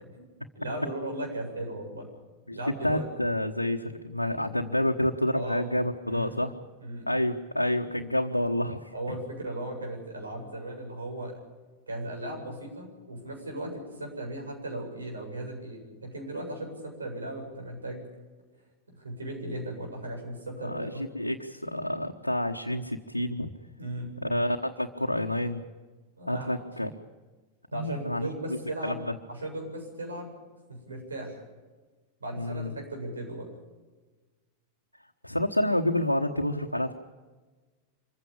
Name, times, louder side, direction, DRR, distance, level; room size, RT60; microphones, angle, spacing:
voice 1, 0.5-2.1 2.5-3.1 5.3-5.7 6.1-6.4 6.8-7.1 8.9-11.3 11.9-18.0 18.9-21.0 23.8-24.1 26.2-26.6 27.7-29.0 29.3-30.3 30.7-31.4 32.2-33.5, right 1 dB, 75° right, 1 dB, 7.8 m, -37 dB
voice 2, 2.8-6.5 7.1-8.9 20.6-23.5 24.2-25.6 26.3-26.9 27.7-28.6 28.8-29.1 32.3-32.7 35.2-36.9, left 1 dB, 85° left, 1 dB, 1.2 m, -29 dB
25.5 x 15.5 x 8.7 m, 1.3 s
figure-of-eight pair, 90°, 0 cm